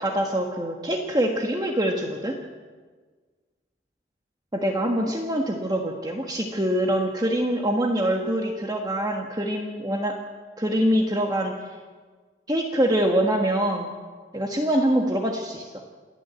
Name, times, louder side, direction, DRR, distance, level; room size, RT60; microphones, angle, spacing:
voice 1, 0.0-2.4 4.5-10.1 10.6-11.6 12.5-13.9 14.3-15.7, right 1 dB, 20° right, 2 dB, 1.4 m, -24 dB
28.0 x 10.0 x 9.3 m, 1.5 s
head